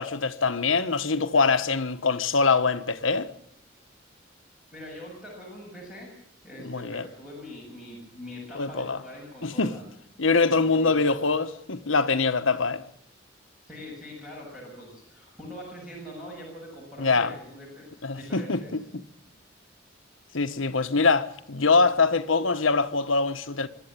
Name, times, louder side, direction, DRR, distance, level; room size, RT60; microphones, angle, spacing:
voice 1, 0.0-3.3 6.6-7.1 8.5-9.0 9.4-9.7 10.2-12.8 17.0-17.3 18.0-18.8 20.3-23.7, left 4 dB, 85° left, 1.3 m, -24 dB
voice 2, 4.7-6.1 6.4-9.8 10.3-10.9 11.2-11.3 13.7-18.7, equal, 5° right, 7.4 m, -43 dB
25.0 x 12.5 x 8.9 m
head